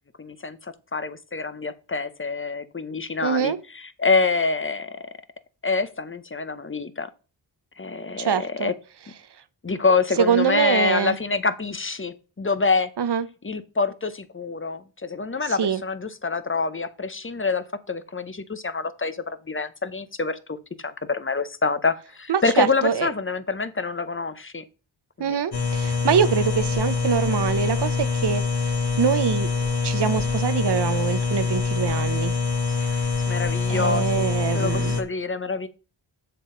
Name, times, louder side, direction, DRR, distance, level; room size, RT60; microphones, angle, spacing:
voice 1, 0.2-5.0 5.6-7.1 7.8-8.7 9.6-12.9 13.4-24.6 25.2-25.4 32.7-34.3 34.5-35.7, left 4 dB, 25° left, 0.7 m, -26 dB
voice 2, 3.2-3.6 8.2-8.7 10.2-11.2 13.0-13.2 15.6-15.8 22.3-23.1 25.2-28.4 29.0-29.5 29.8-32.3 33.7-35.0, right 7 dB, 55° right, 0.8 m, -24 dB
sound 1, 25.5-35.0, left 4 dB, 50° left, 1.4 m, -25 dB
7.2 x 6.7 x 3.8 m
cardioid pair, 50°, 48 cm